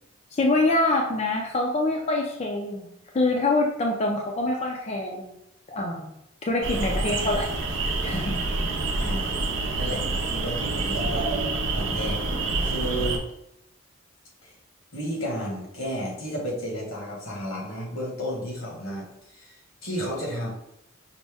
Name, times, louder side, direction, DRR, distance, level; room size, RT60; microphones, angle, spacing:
voice 1, 0.3-2.9 3.1-5.3 5.7-6.1 6.5-7.5 8.0-8.4, left 2 dB, 30° left, 0 dB, 0.4 m, -25 dB
sound 1, 6.6-13.2, right 2 dB, 65° right, 0.6 m, -27 dB
voice 2, 9.0-9.4 9.7-11.3 11.7-12.2 12.6-13.2 14.4-14.5 14.9-20.5, equal, 85° left, -2 dB, 1.4 m, -32 dB
5.2 x 2.1 x 3.4 m, 0.81 s
head